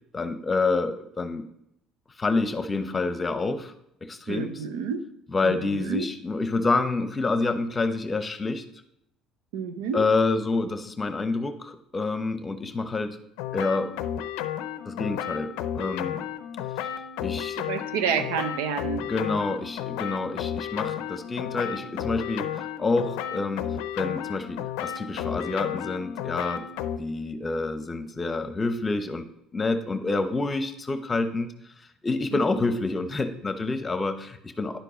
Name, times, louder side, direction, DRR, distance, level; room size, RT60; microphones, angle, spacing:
voice 1, 0.1-1.5 2.2-3.7 4.0-4.6 5.3-8.7 9.9-13.2 13.5-13.9 14.8-16.2 17.2-17.6 19.1-23.7 23.9-26.7 27.0-29.3 29.5-31.5 32.0-34.8, left 3 dB, 25° left, 10 dB, 0.9 m, -28 dB
voice 2, 4.3-5.0 5.4-6.1 9.5-10.1 17.6-19.1 32.3-32.4, right 6 dB, 90° right, 9 dB, 0.7 m, -29 dB
sound 1, 13.4-27.0, left 10 dB, 80° left, 0.5 m, -33 dB
10.5 x 4.5 x 5.1 m, 0.76 s
supercardioid pair, 85°, 0 cm